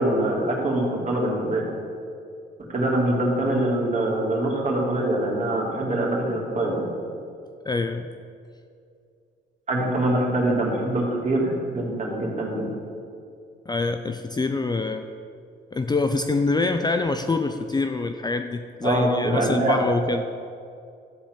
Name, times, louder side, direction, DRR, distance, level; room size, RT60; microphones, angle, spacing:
voice 1, 0.0-1.7 2.7-6.9 9.7-12.7 18.8-19.8, right 1 dB, 35° right, -3 dB, 3.0 m, -24 dB
voice 2, 7.6-8.1 13.7-15.1 15.7-20.3, left 3 dB, 20° left, 7 dB, 0.5 m, -25 dB
13.0 x 4.4 x 8.3 m, 2.4 s
cardioid pair, 90°, 20 cm